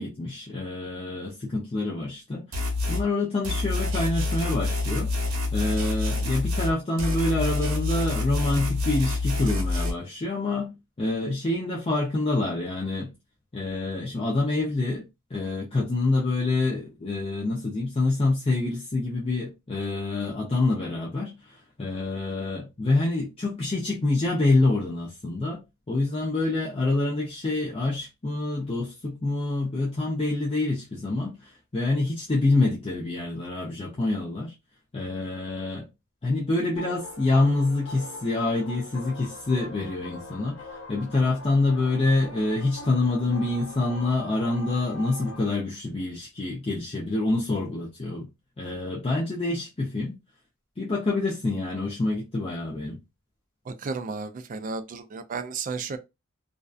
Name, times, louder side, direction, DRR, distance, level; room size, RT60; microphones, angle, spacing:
voice 1, 0.0-5.1 5.5-10.7 11.0-13.1 13.5-15.0 15.3-25.6 25.9-34.5 34.9-35.9 36.2-48.3 48.6-50.2 50.8-53.0, left 2 dB, 25° left, 0.4 m, -26 dB
sound 1, 2.5-3.0 3.4-6.7 7.0-9.9, left 3 dB, 70° right, 0.9 m, -27 dB
sound 2, 36.8-45.5, left 2 dB, 85° left, 0.7 m, -42 dB
voice 2, 53.7-56.0, right 4 dB, 35° right, 0.3 m, -33 dB
2.5 x 2.2 x 2.3 m
head